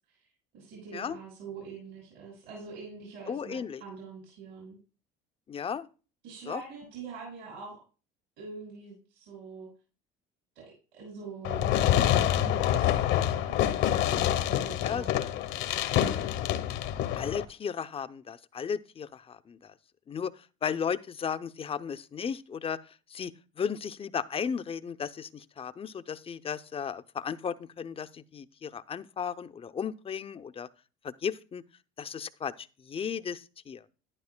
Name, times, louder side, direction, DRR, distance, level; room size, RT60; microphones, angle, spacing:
voice 1, 0.5-4.8 6.2-7.8 8.4-9.7 10.6-10.7 10.9-13.5 13.9-15.2, right 5 dB, 75° right, -3 dB, 6.1 m, -44 dB
voice 2, 3.3-3.8 5.5-5.9 6.5-6.6 14.8-15.1 17.2-19.7 20.1-23.3 23.6-30.7 31.0-31.6 32.0-33.8, left 7 dB, 25° left, 13 dB, 0.6 m, -35 dB
Fireworks, 11.4-17.4, left 11 dB, 70° left, 1.0 m, -26 dB
12.0 x 11.0 x 2.2 m, 0.35 s
supercardioid pair, 85°, 21 cm